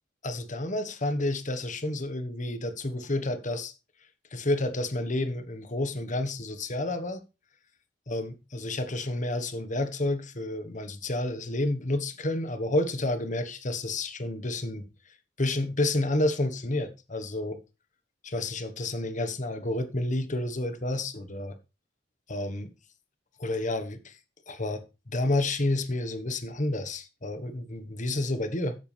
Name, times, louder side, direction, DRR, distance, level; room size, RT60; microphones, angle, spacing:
voice 1, 0.2-3.7 4.3-7.2 8.1-14.9 15.4-17.6 18.2-21.6 22.3-22.7 23.4-24.2 24.5-28.8, left 1 dB, 45° left, 1.4 m, -30 dB
12.5 x 8.1 x 3.5 m
head